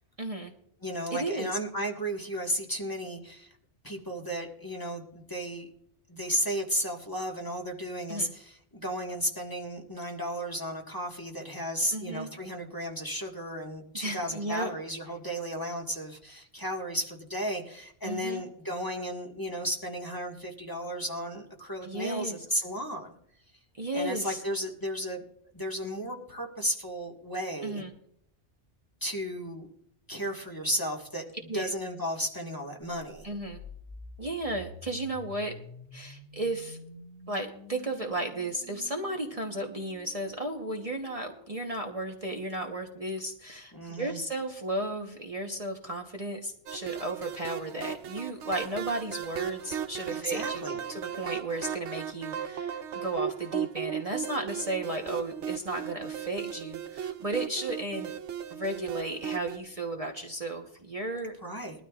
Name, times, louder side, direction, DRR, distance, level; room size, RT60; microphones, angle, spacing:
voice 1, 0.2-0.5 1.1-1.6 8.1-8.3 11.9-12.3 13.9-14.7 18.0-18.4 21.8-22.4 23.7-24.4 27.6-27.9 31.5-31.7 33.2-33.6 34.2-35.5 35.9-36.8 37.3-58.1 58.5-61.3, right 2 dB, 30° right, 1 dB, 1.2 m, -34 dB
voice 2, 0.8-3.5 3.8-5.7 6.1-23.1 23.9-25.2 25.5-27.8 29.0-29.7 30.1-33.3 43.7-44.2 50.2-50.8 61.4-61.8, equal, 20° left, 0 dB, 1.7 m, -34 dB
sound 1, 33.0-42.8, left 2 dB, 90° left, 6.9 m, -50 dB
sound 2, 46.7-59.6, right 8 dB, 85° right, 1.1 m, -36 dB
21.0 x 12.5 x 2.4 m, 0.68 s
omnidirectional pair, 1.2 m